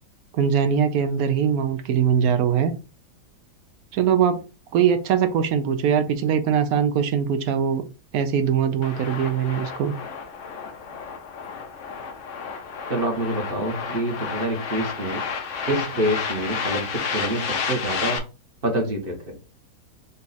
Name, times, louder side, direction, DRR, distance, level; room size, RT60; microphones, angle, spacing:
voice 1, 0.3-2.7 3.9-4.4 4.7-7.8 8.1-9.9, right 8 dB, 70° right, 1.0 m, -21 dB
sound 1, 8.8-18.2, left 6 dB, 60° left, 0.8 m, -31 dB
voice 2, 12.9-15.3 15.7-18.2 18.6-19.4, right 1 dB, 40° right, 1.0 m, -26 dB
4.0 x 2.3 x 4.0 m
omnidirectional pair, 1.8 m